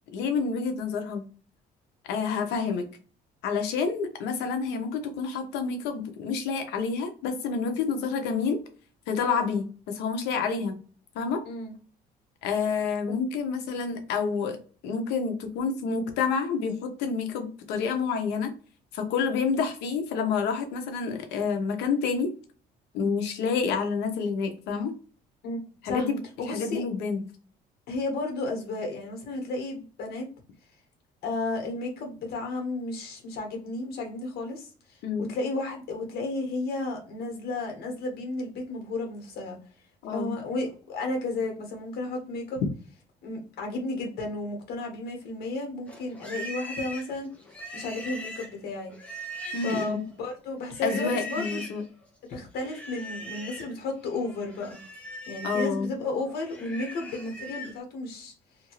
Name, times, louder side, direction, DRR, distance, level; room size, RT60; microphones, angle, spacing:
voice 1, 0.1-1.2 2.1-2.9 3.4-8.6 9.1-10.8 11.1-11.4 12.4-14.6 14.8-18.5 18.9-22.3 22.9-24.9 25.8-26.2 26.5-27.2 35.0-35.3 40.0-40.3 49.5-50.0 50.8-51.8 55.4-55.9, left 5 dB, 90° left, 6 dB, 0.8 m, -28 dB
voice 2, 26.4-26.8 27.9-30.3 31.2-39.6 40.1-42.6 43.2-47.3 47.7-48.9 49.5-51.6 52.3-54.8 55.2-58.3, left 2 dB, 70° left, 2 dB, 1.4 m, -33 dB
Livestock farm animals working animals, 45.9-50.1 50.7-51.8 52.6-53.7 54.1-57.8, equal, 10° left, 0.9 m, -40 dB
2.9 x 2.6 x 3.0 m, 0.39 s
cardioid pair, 110°, 17 cm